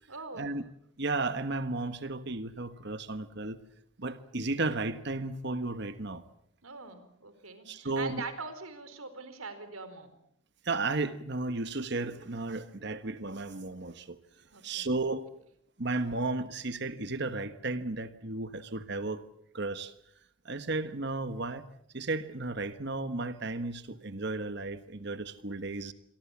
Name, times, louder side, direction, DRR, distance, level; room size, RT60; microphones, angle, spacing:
voice 1, 0.1-0.5 6.6-10.1 14.5-14.9, right 4 dB, 85° right, 4.5 m, -43 dB
voice 2, 1.0-3.6 4.0-6.2 7.7-8.2 10.6-14.2 14.6-15.3 15.8-19.2 19.5-19.9 20.4-21.7 21.9-25.9, right 2 dB, 55° right, 1.3 m, -34 dB
28.0 x 23.5 x 7.2 m
head